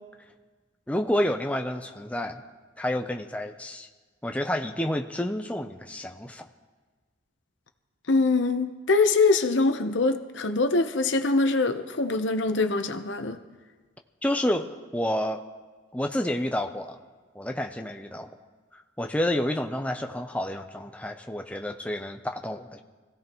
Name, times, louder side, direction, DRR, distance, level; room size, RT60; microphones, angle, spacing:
voice 1, 0.9-2.4 2.8-3.9 4.2-6.5 14.2-15.4 15.9-17.0 17.4-18.3 18.7-22.8, left 1 dB, 5° left, 4 dB, 0.6 m, -29 dB
voice 2, 8.1-13.4, left 3 dB, 75° left, 7 dB, 0.9 m, -23 dB
25.0 x 16.0 x 3.0 m, 1.4 s
head